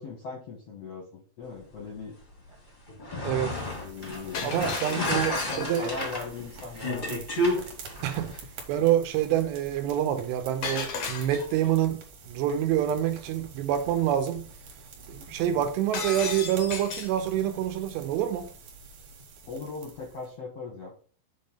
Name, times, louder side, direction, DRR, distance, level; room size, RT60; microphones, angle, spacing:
voice 1, 0.0-2.1 3.6-4.6 5.0-7.2 15.5-15.7 19.4-20.9, left 4 dB, 70° left, 1.5 m, -39 dB
sound 1, 2.9-8.4, left 1 dB, 40° left, 0.6 m, -32 dB
voice 2, 3.2-3.6 4.4-5.9 8.0-8.3 8.7-14.5 15.1-18.5, right 11 dB, 85° right, 2.8 m, -27 dB
sound 2, 3.5-20.3, right 4 dB, 60° right, 2.9 m, -47 dB
Shatter, 4.3-6.0 10.6-11.7 15.9-17.2, left 4 dB, 90° left, 1.3 m, -34 dB
7.6 x 3.6 x 5.3 m
omnidirectional pair, 5.1 m